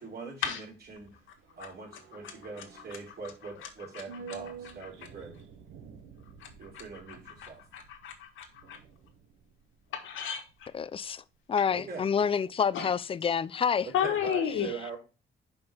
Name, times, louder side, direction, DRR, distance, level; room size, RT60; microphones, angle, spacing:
voice 1, 0.0-1.2 1.6-5.4 6.6-7.6 11.7-12.0 13.8-15.0, right 4 dB, 50° right, 3.2 m, -42 dB
sound 1, 0.7-11.1 11.4-11.5, right 6 dB, 85° right, 1.1 m, -51 dB
voice 2, 3.9-4.4 4.8-4.9 6.4-8.8 9.9-10.7 12.7-12.9 13.9-14.7, left 8 dB, 80° left, 1.5 m, -34 dB
voice 3, 10.7-11.2 11.5-13.9, left 7 dB, 30° left, 0.4 m, -28 dB
5.3 x 5.2 x 5.8 m
cardioid pair, 90°, 20 cm